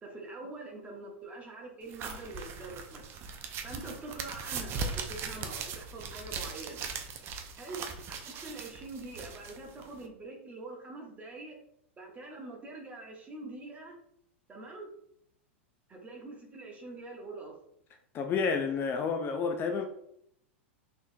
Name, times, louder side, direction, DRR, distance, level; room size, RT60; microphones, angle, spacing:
voice 1, 0.0-3.1 3.6-6.8 7.6-7.8 8.1-11.6 12.0-14.0 14.5-14.9 15.9-17.6, right 2 dB, 20° right, 1.0 m, -44 dB
sound 1, 1.9-10.1, right 5 dB, 35° right, 0.5 m, -39 dB
voice 2, 18.1-19.9, left 5 dB, 30° left, 0.4 m, -30 dB
3.8 x 3.1 x 2.6 m
hypercardioid pair, 105°, 7 cm